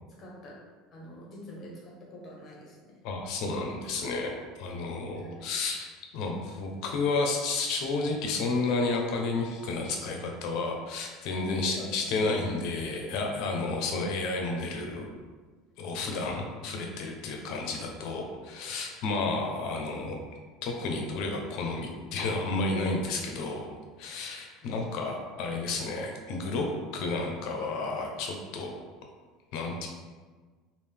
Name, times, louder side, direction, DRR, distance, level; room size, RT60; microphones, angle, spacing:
voice 1, 0.2-0.6 0.9-3.0 5.1-5.5 11.3-11.9 12.2-12.6 17.4-17.6 24.6-24.7, left 2 dB, 25° left, -3 dB, 0.8 m, -44 dB
voice 2, 3.0-15.1 15.8-20.2 20.6-23.7 24.0-26.7 26.9-28.7 29.5-29.9, left 3 dB, 50° left, 2 dB, 0.6 m, -31 dB
3.6 x 2.5 x 3.3 m, 1.4 s
cardioid pair, 175°, 0 cm